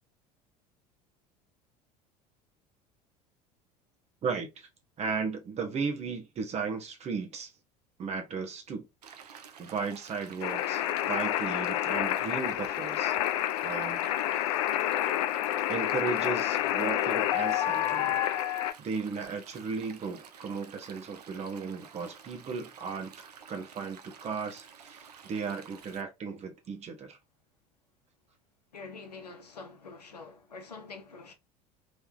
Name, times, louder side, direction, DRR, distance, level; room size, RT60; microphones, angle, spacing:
voice 1, 4.2-4.7 5.0-7.5 8.0-8.8 9.1-13.2 13.6-14.1 14.4-14.5 15.7-18.2 18.8-23.1 23.5-27.2, right 5 dB, 30° right, 1.1 m, -35 dB
Stream, 9.0-26.0, right 7 dB, 75° right, 0.6 m, -51 dB
sound 1, 10.4-18.7, left 13 dB, 60° left, 0.4 m, -29 dB
voice 2, 28.7-31.3, left 4 dB, 80° left, 0.8 m, -46 dB
3.5 x 3.2 x 2.6 m
figure-of-eight pair, 70°, 20 cm